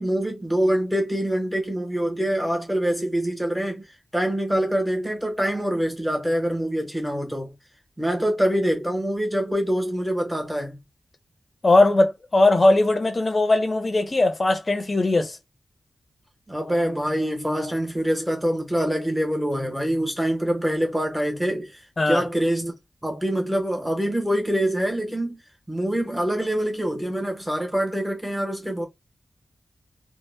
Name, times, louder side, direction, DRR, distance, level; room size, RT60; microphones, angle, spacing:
voice 1, 0.0-3.9 4.1-7.5 8.0-10.8 16.5-22.7 23.0-25.4 25.7-28.8, equal, 5° right, 0.8 m, -25 dB
voice 2, 11.6-15.4 22.0-22.2, left 2 dB, 30° left, 0.6 m, -19 dB
2.1 x 2.0 x 3.1 m
wide cardioid pair, 160°, 0 cm